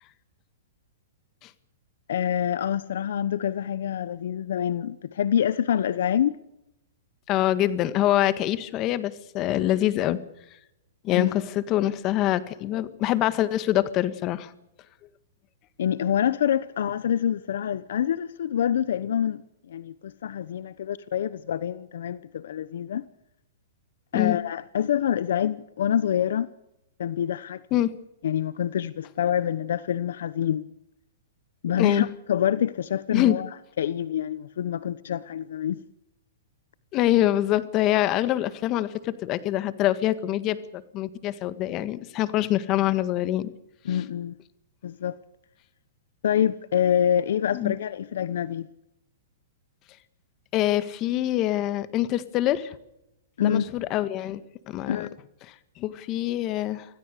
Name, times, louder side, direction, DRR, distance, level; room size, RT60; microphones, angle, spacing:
voice 1, 2.1-6.4 11.1-11.3 15.8-19.4 19.7-23.0 24.1-26.5 27.0-27.6 28.2-30.7 31.6-33.5 33.8-35.8 43.9-44.3 44.8-45.2 46.2-48.7 53.4-53.7 54.9-55.2, left 9 dB, 70° left, 0.9 m, -26 dB
voice 2, 7.3-10.2 11.0-14.5 24.1-24.4 27.7-27.9 31.8-32.1 33.1-33.4 36.9-43.5 43.9-44.0 47.5-47.8 50.5-52.7 53.4-54.4 54.7-55.1 55.5-56.9, left 13 dB, 35° left, 1.7 m, -25 dB
26.0 x 17.0 x 6.7 m
hypercardioid pair, 135°, 0 cm